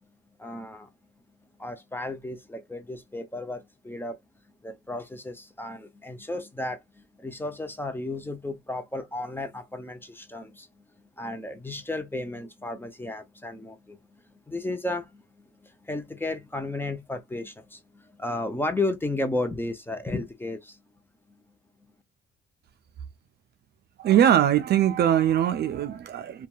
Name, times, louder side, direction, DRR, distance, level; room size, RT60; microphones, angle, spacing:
voice 1, 0.4-0.9 1.6-4.2 4.6-10.8 11.2-14.0 14.5-20.8, left 2 dB, 10° left, 0.6 m, -33 dB
voice 2, 24.0-26.5, right 10 dB, 55° right, 0.4 m, -21 dB
2.7 x 2.3 x 2.3 m
cardioid pair, 90°, 20 cm